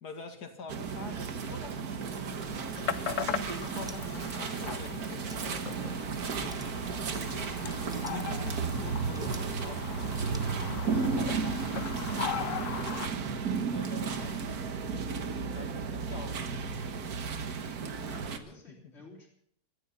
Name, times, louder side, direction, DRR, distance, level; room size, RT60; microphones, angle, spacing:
voice 1, 0.0-5.8 6.1-7.0 8.1-11.8 13.6-16.8 18.7-18.9, left 4 dB, 85° left, 5 dB, 2.6 m, -47 dB
sound 1, 0.7-18.4, right 5 dB, 75° right, 1.7 m, -34 dB
sound 2, 2.2-13.1, left 9 dB, 60° left, 1.0 m, -39 dB
sound 3, 3.6-4.0 5.1-5.6 6.0-6.2 6.5-6.9 7.7-8.3 9.1-9.5 10.2-10.5, equal, 5° right, 0.8 m, -50 dB
voice 2, 6.9-7.2 18.0-19.3, left 3 dB, 45° left, -7 dB, 3.6 m, -54 dB
17.5 x 14.0 x 5.6 m, 0.70 s
omnidirectional pair, 1.7 m